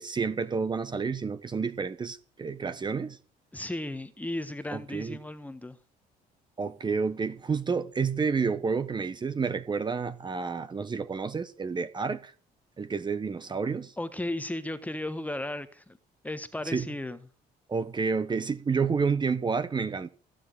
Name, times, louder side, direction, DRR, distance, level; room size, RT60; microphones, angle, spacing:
voice 1, 0.0-3.2 4.7-5.2 6.6-12.3 12.8-13.9 16.7-16.9 17.7-20.1, right 5 dB, 25° right, 1.2 m, -30 dB
voice 2, 3.5-5.8 14.0-16.0 16.2-17.2, left 1 dB, 10° left, 1.4 m, -35 dB
15.0 x 7.3 x 9.6 m
cardioid pair, 110°, 17 cm